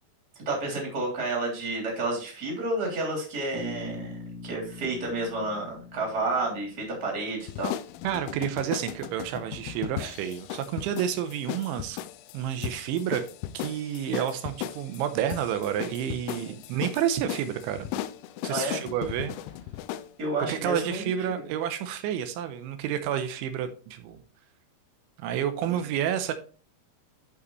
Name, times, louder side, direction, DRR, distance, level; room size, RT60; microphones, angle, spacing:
voice 1, 0.4-4.2 4.4-7.7 16.3-16.5 18.5-18.8 20.2-21.1 25.7-25.8, right 2 dB, 25° right, -1 dB, 3.0 m, -30 dB
Bass guitar, 3.5-7.6, left 2 dB, 70° right, 1.2 m, -42 dB
sound 1, 7.4-20.1, left 12 dB, 85° left, 2.9 m, -37 dB
voice 2, 8.0-12.0 12.3-13.2 13.5-17.9 18.4-19.3 20.5-24.2 25.2-26.3, right 9 dB, 85° right, 9 dB, 3.2 m, -30 dB
11.0 x 5.2 x 3.1 m, 0.39 s
omnidirectional pair, 5.4 m